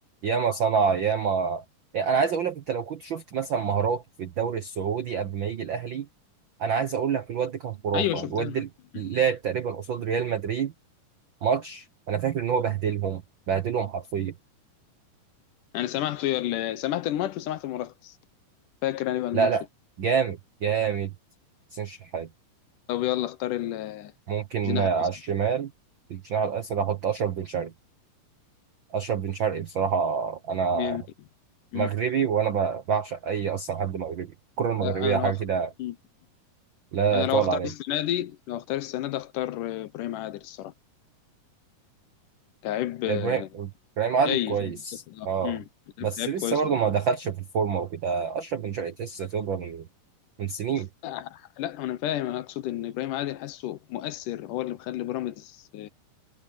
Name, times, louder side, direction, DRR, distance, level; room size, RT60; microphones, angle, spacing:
voice 1, 0.2-1.6 1.9-6.1 6.6-8.7 8.9-10.7 11.4-14.3 19.3-19.6 20.0-21.1 21.7-22.3 24.3-25.7 26.1-27.7 28.9-31.0 31.7-34.3 34.6-35.7 36.9-37.7 43.1-43.7 44.0-45.6 46.0-49.9 50.4-50.9, right 6 dB, 70° right, 1.1 m, -27 dB
voice 2, 7.9-8.6 8.9-9.0 15.7-18.2 18.8-19.5 22.9-24.1 24.6-25.1 30.7-31.0 31.7-31.9 34.8-35.3 35.8-36.0 37.1-40.7 42.6-43.5 44.3-44.7 45.1-45.7 46.0-46.8 51.0-55.9, left 13 dB, 75° left, 2.3 m, -30 dB
omnidirectional pair, 4.0 m